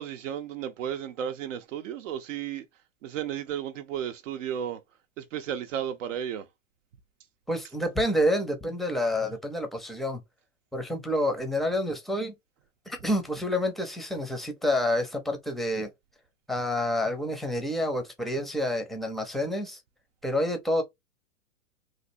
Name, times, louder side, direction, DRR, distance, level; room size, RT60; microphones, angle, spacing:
voice 1, 0.0-2.7 3.0-4.8 5.2-6.5, right 9 dB, 65° right, 0.6 m, -33 dB
voice 2, 7.5-10.2 10.7-12.3 12.9-15.9 16.5-19.8 20.2-20.8, left 1 dB, ahead, 0.6 m, -28 dB
3.2 x 2.5 x 2.6 m
hypercardioid pair, 115°, 40 cm